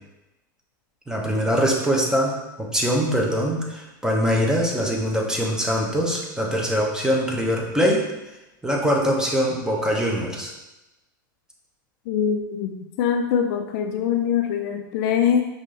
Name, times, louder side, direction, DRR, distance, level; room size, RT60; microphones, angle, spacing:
voice 1, 1.1-8.0 8.6-10.5, equal, 5° right, -1 dB, 0.9 m, -23 dB
voice 2, 12.1-15.4, left 8 dB, 60° left, 5 dB, 0.4 m, -23 dB
5.1 x 2.7 x 3.3 m, 0.98 s
hypercardioid pair, 100°, 11 cm